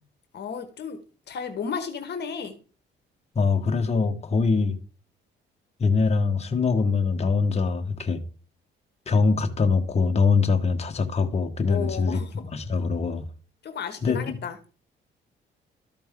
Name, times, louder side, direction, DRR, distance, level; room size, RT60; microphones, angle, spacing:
voice 1, 0.3-1.0 1.3-2.6 11.7-12.3 13.6-14.6, left 6 dB, 60° left, 1.2 m, -33 dB
voice 2, 3.3-4.8 5.8-8.2 9.1-13.3 14.0-14.4, left 4 dB, 35° left, 1.2 m, -23 dB
13.0 x 5.2 x 3.6 m
cardioid pair, 90°, 20 cm